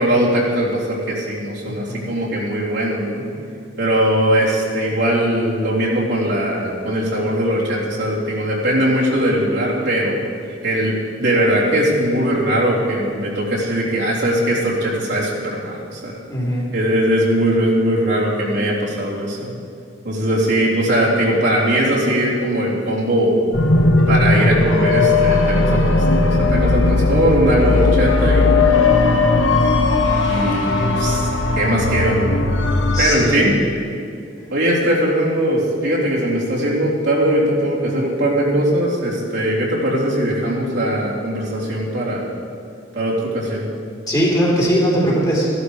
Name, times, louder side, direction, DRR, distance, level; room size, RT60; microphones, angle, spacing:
voice 1, 0.0-3.3 3.8-10.2 10.6-16.1 16.7-19.5 20.0-23.4 24.1-28.5 30.2-31.3 31.5-32.3 33.0-33.5 34.5-42.3 42.9-43.7, right 1 dB, 65° right, -6 dB, 3.6 m, -20 dB
voice 2, 1.7-2.1 16.3-16.7 32.9-33.4 44.1-45.5, equal, 20° left, -5 dB, 3.4 m, -19 dB
sound 1, 23.5-33.1, left 3 dB, 80° left, 1.2 m, -17 dB
15.0 x 12.0 x 5.1 m, 2.4 s
head